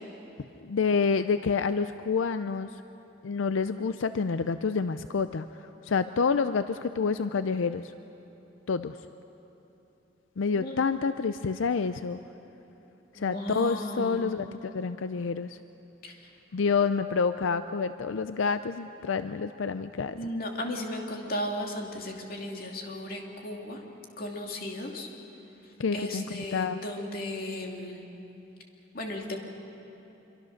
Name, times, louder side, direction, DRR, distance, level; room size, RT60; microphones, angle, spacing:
voice 1, 0.6-2.8 3.2-7.9 8.7-9.0 10.4-12.2 13.1-15.6 16.5-20.3 25.8-26.8, left 5 dB, 90° left, 11 dB, 0.5 m, -28 dB
voice 2, 13.1-14.2 16.0-16.1 20.2-23.8 24.2-25.1 25.9-28.1 28.9-29.4, left 1 dB, 50° left, 1 dB, 2.6 m, -35 dB
26.0 x 23.5 x 6.5 m, 3.0 s
head